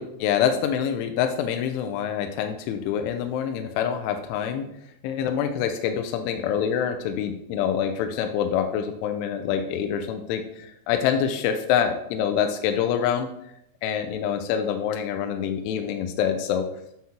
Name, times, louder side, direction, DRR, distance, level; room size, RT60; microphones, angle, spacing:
voice 1, 0.0-4.6 5.0-13.3 13.8-16.6, left 8 dB, 80° left, 5 dB, 3.0 m, -26 dB
9.3 x 7.5 x 2.9 m, 0.76 s
omnidirectional pair, 5.6 m